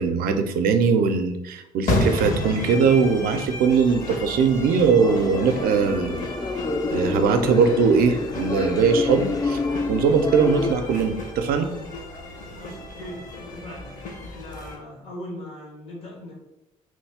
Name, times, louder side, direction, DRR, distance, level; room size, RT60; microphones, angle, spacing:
voice 1, 0.0-6.3 6.9-9.6 9.9-11.7, right 5 dB, 60° right, 7 dB, 0.4 m, -20 dB
sound 1, 1.9-14.8, left 2 dB, 50° left, 0.8 m, -33 dB
sound 2, 3.9-10.7, left 3 dB, 20° left, 0.3 m, -29 dB
voice 2, 12.5-13.9 14.2-16.3, left 1 dB, 80° left, -4 dB, 1.4 m, -39 dB
3.0 x 2.3 x 3.4 m, 0.92 s
hypercardioid pair, 45°, 17 cm